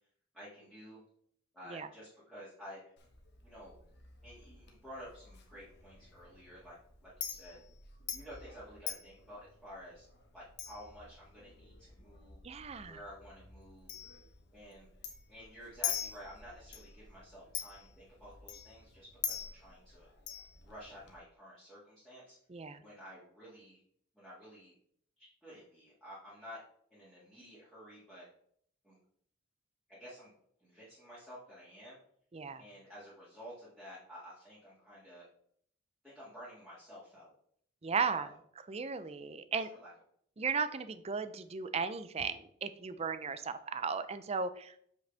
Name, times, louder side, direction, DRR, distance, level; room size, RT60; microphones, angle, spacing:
voice 1, 0.3-1.0 1.5-2.8 3.4-3.7 4.2-6.8 7.0-7.6 8.1-10.1 10.3-12.4 12.8-13.9 14.5-14.9 15.3-20.1 20.6-22.4 22.8-23.8 24.1-24.7 25.2-26.6 26.9-28.3 28.8-29.0 29.9-30.3 30.6-32.0 32.6-35.3 36.0-37.3 38.0-38.3 39.5-39.9, equal, 5° left, -11 dB, 2.0 m, -52 dB
Chink clink, 3.0-21.2, left 9 dB, 50° left, 1.1 m, -45 dB
voice 2, 12.4-13.0 22.5-22.8 32.3-32.6 37.8-38.3 38.7-39.7 40.4-44.7, right 5 dB, 30° right, 11 dB, 0.4 m, -36 dB
7.6 x 5.3 x 3.4 m, 0.65 s
head